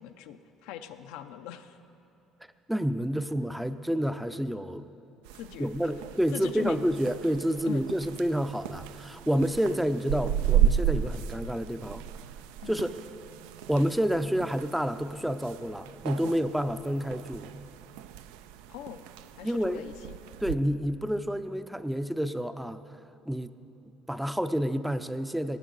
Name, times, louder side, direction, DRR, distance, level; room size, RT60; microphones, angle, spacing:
voice 1, 0.0-1.8 5.3-5.7 6.3-6.8 7.6-7.8 12.6-12.8 16.2-16.4 18.7-19.1 19.4-20.1, left 10 dB, 85° left, 8 dB, 0.5 m, -41 dB
voice 2, 2.7-4.9 5.6-12.0 12.7-12.9 13.7-17.5 19.4-19.8 20.4-22.8 23.3-23.5 24.1-25.6, equal, 5° right, 11 dB, 0.4 m, -29 dB
sound 1, 5.2-20.6, right 10 dB, 90° right, 0.3 m, -34 dB
17.5 x 9.1 x 3.9 m, 2.9 s
supercardioid pair, 90°, 0 cm